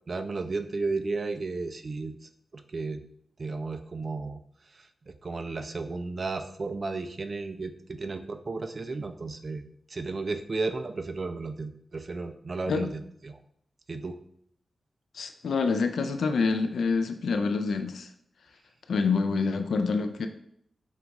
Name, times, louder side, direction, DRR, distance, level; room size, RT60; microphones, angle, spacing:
voice 1, 0.1-3.0 3.4-4.4 4.7-13.4 13.9-14.2, right 3 dB, 40° right, 8 dB, 0.3 m, -34 dB
voice 2, 15.1-18.1 18.9-20.3, left 4 dB, 80° left, 7 dB, 0.3 m, -27 dB
4.5 x 2.4 x 3.9 m, 0.68 s
wide cardioid pair, 145°, 0 cm